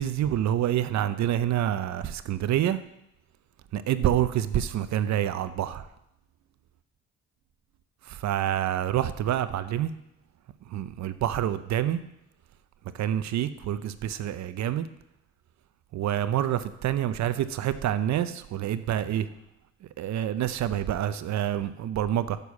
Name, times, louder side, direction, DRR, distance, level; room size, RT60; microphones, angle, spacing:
voice 1, 0.0-2.8 3.7-5.8 8.1-9.9 10.7-12.0 12.9-14.9 15.9-19.3 20.0-22.4, right 11 dB, 65° right, 13 dB, 0.6 m, -27 dB
6.7 x 6.4 x 7.1 m, 0.82 s
cardioid pair, 90°, 30 cm